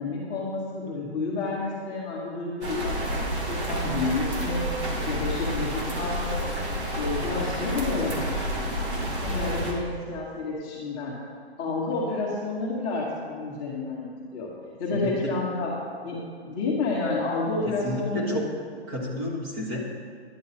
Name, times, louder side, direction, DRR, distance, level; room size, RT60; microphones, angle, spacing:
voice 1, 0.0-4.7 5.1-6.4 6.9-8.4 9.2-11.1 11.6-14.5 14.8-15.7 16.0-16.2 16.4-18.4, left 3 dB, 15° left, -7 dB, 1.0 m, -30 dB
sound 1, 2.6-9.7, equal, 90° right, 2.3 m, -29 dB
voice 2, 14.9-15.3 17.6-18.4 18.9-19.8, left 1 dB, 20° right, -2 dB, 1.2 m, -31 dB
10.5 x 8.3 x 4.2 m, 2.1 s
hypercardioid pair, 170°, 33 cm